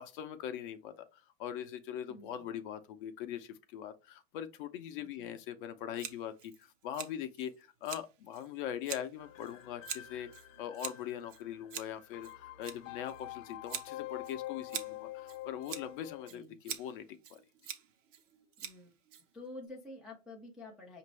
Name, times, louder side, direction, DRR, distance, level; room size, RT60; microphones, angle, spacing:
voice 1, 0.0-10.3 10.6-17.0 17.3-17.4, left 10 dB, 45° left, 0.6 m, -42 dB
voice 2, 2.1-2.5 5.0-5.4 16.3-16.6 18.6-18.9 19.3-21.0, left 2 dB, ahead, 0.4 m, -49 dB
Scissors, 6.0-19.7, right 9 dB, 75° right, 0.9 m, -46 dB
sound 1, 9.2-16.3, left 16 dB, 85° left, 0.7 m, -46 dB
5.1 x 2.6 x 3.1 m
hypercardioid pair, 140°, 38 cm